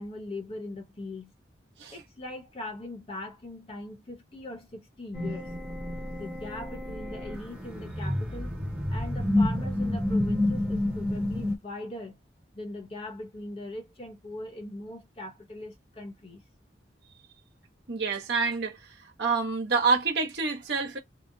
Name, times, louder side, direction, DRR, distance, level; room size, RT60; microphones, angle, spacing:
voice 1, 0.0-1.3 1.9-5.5 6.2-8.6 8.9-12.2 12.5-16.4, left 2 dB, 35° left, 0.9 m, -40 dB
sound 1, 5.1-11.6, left 1 dB, 10° right, 0.9 m, -29 dB
voice 2, 17.9-18.8 19.2-21.0, right 4 dB, 70° right, 1.1 m, -27 dB
2.9 x 2.0 x 2.6 m
head